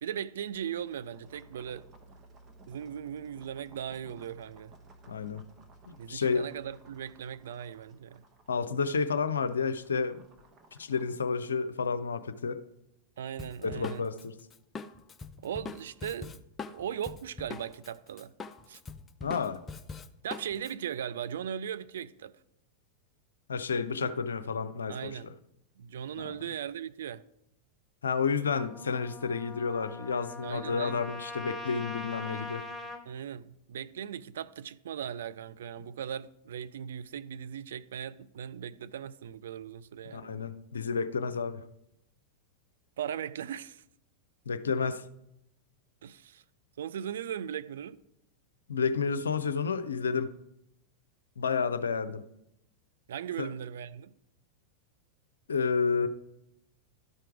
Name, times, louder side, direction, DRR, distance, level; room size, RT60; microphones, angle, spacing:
voice 1, 0.0-1.9 2.7-4.7 6.0-8.2 13.2-14.1 15.4-16.4 16.7-18.3 18.7-18.8 20.2-22.4 24.9-25.3 25.8-27.2 30.4-31.0 33.1-40.4 43.0-43.8 46.0-46.4 46.8-48.0 53.1-54.1, right 9 dB, 60° right, 0.3 m, -38 dB
sound 1, 0.5-11.2, right 2 dB, 25° right, 1.1 m, -57 dB
voice 2, 5.1-5.4 5.9-6.4 8.5-10.2 10.8-12.6 13.6-14.4 19.2-19.6 23.5-25.1 26.1-26.4 28.0-32.6 40.1-41.6 44.5-45.0 48.7-50.3 51.4-52.2 53.4-53.5 55.5-56.1, left 5 dB, 70° left, 0.5 m, -30 dB
Drum kit, 13.4-17.9 18.2-20.7, left 4 dB, 20° left, 0.4 m, -42 dB
Trumpet, 28.5-33.0, left 2 dB, ahead, 1.0 m, -42 dB
12.0 x 4.5 x 4.7 m
figure-of-eight pair, 90°, 0 cm